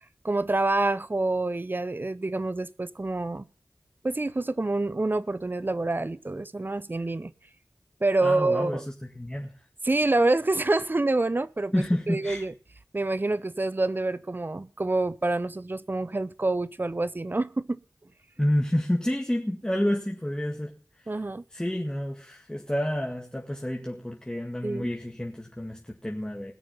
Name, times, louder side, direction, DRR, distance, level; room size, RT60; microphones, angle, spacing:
voice 1, 0.2-3.5 4.0-7.3 8.0-8.9 9.8-12.5 12.9-17.8 21.1-21.4 24.6-24.9, right 2 dB, 35° right, 0.7 m, -27 dB
voice 2, 8.2-8.8 9.1-9.6 11.7-12.4 18.4-20.7 21.0-21.1 21.5-26.5, left 1 dB, 15° left, 1.8 m, -29 dB
20.0 x 6.8 x 5.6 m
wide cardioid pair, 50°, 6 cm